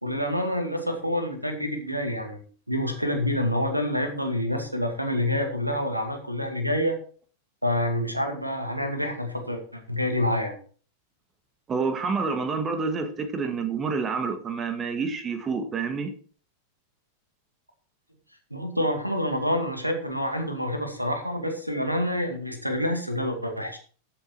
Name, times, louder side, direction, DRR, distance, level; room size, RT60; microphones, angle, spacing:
voice 1, 0.0-2.4 2.7-7.0 7.6-10.6 18.5-23.8, left 1 dB, 90° right, 5 dB, 2.3 m, -27 dB
voice 2, 11.7-16.1, right 4 dB, 25° right, 8 dB, 1.9 m, -28 dB
13.5 x 7.1 x 4.5 m, 0.41 s
figure-of-eight pair, 90°, 0 cm